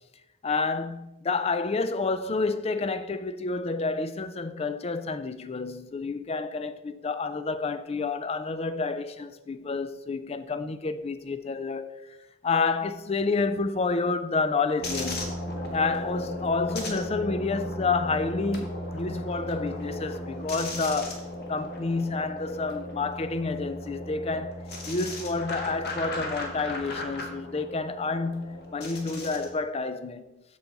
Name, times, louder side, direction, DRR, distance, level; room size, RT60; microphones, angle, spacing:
voice 1, 0.4-12.2 12.4-15.4 15.7-24.5 24.9-30.4, left 4 dB, 30° left, 0.4 m, -29 dB
sound 1, 14.8-29.5, left 1 dB, 50° left, 1.5 m, -36 dB
8.2 x 7.0 x 4.0 m
head